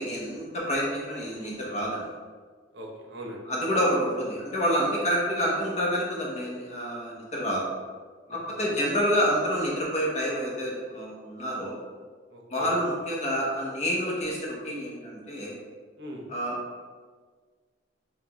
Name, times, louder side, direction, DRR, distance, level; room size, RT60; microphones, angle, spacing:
voice 1, 0.0-2.1 3.5-7.7 8.3-11.8 12.5-15.5 16.3-16.6, equal, 35° left, -3 dB, 0.9 m, -28 dB
voice 2, 2.7-3.4 8.3-8.8 12.3-12.8 16.0-16.3, equal, 65° right, -1 dB, 0.7 m, -41 dB
5.8 x 2.3 x 3.0 m, 1.5 s
head